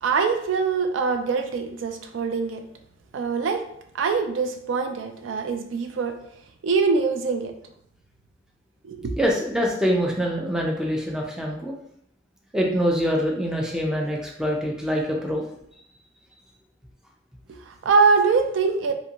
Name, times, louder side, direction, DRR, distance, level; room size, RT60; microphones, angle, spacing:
voice 1, 0.0-2.6 3.1-3.7 3.9-6.1 6.6-7.5 8.8-9.2 17.7-18.9, right 4 dB, 90° right, 6 dB, 0.3 m, -23 dB
voice 2, 9.2-11.8 12.5-15.4, equal, 5° right, -1 dB, 0.4 m, -24 dB
2.5 x 2.5 x 2.8 m, 0.71 s
head